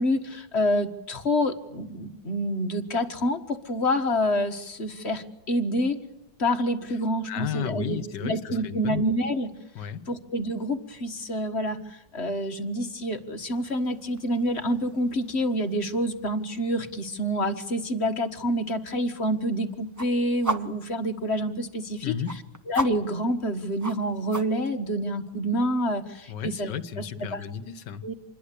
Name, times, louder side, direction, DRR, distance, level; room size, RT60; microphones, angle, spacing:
voice 1, 0.0-6.0 6.4-9.5 10.1-22.2 22.7-26.7 27.0-27.1 27.3-27.4 28.0-28.1, equal, 35° left, 7 dB, 1.7 m, -27 dB
voice 2, 7.3-9.0 9.8-10.1 22.0-22.5 26.3-28.1, left 9 dB, 70° left, 13 dB, 1.8 m, -33 dB
sound 1, 13.5-24.7, right 2 dB, 25° right, 0.4 m, -39 dB
27.0 x 21.5 x 8.5 m, 0.84 s
omnidirectional pair, 2.0 m